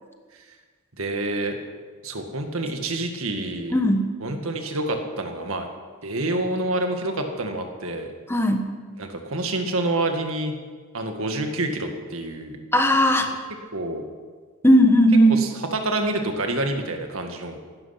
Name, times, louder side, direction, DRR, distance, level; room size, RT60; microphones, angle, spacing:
voice 1, 1.0-1.6 2.0-3.8 4.2-5.7 6.0-8.1 9.0-10.6 10.9-12.6 13.7-14.0 15.3-17.6, right 2 dB, 70° right, 4 dB, 1.9 m, -27 dB
voice 2, 3.7-4.1 8.3-8.6 12.7-13.3 14.6-15.4, equal, 10° left, 5 dB, 1.2 m, -17 dB
16.0 x 12.5 x 5.9 m, 1.5 s
head